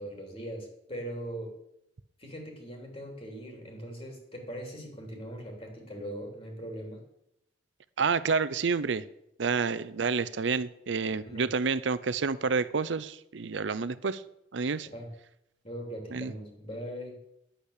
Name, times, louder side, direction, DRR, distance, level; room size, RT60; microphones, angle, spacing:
voice 1, 0.0-1.5 2.2-7.0 11.3-11.5 14.9-15.1 15.6-17.2, equal, 30° left, 3.1 m, -40 dB
voice 2, 8.0-9.0 9.4-14.2 14.5-14.9 16.1-16.3, right 5 dB, 75° right, 0.6 m, -29 dB
10.5 x 8.2 x 6.6 m
head